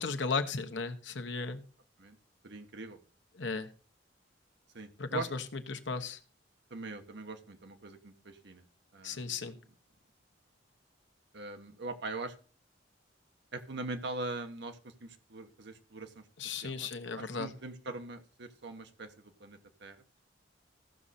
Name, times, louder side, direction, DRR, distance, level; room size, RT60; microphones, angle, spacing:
voice 1, 0.0-1.6 3.3-3.7 5.0-6.2 9.0-9.6 16.4-17.5, left 4 dB, 70° left, 8 dB, 1.1 m, -35 dB
voice 2, 2.4-3.0 4.7-5.3 6.7-8.6 8.9-9.5 11.3-12.3 13.5-16.3 16.6-16.9 17.2-20.0, right 2 dB, 65° right, 7 dB, 1.2 m, -42 dB
15.0 x 6.4 x 4.2 m, 0.40 s
head